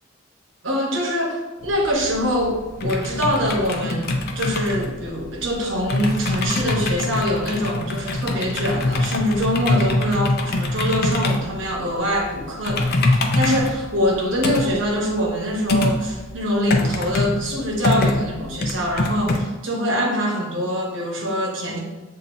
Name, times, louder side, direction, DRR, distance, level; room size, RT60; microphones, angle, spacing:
voice 1, 0.6-21.8, equal, 65° right, -1 dB, 1.0 m, -24 dB
sound 1, 1.6-19.4, left 2 dB, 50° left, 0.5 m, -24 dB
7.2 x 2.7 x 2.6 m, 1.2 s
head